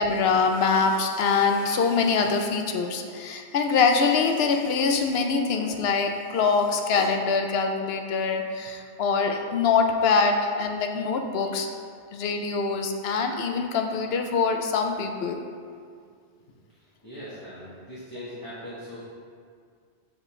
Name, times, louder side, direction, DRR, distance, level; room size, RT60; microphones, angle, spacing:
voice 1, 0.0-11.7 12.1-15.4, left 5 dB, 70° left, 4 dB, 0.8 m, -24 dB
voice 2, 16.7-19.0, equal, 20° left, -12 dB, 1.4 m, -40 dB
6.5 x 5.1 x 3.2 m, 2.1 s
omnidirectional pair, 1.2 m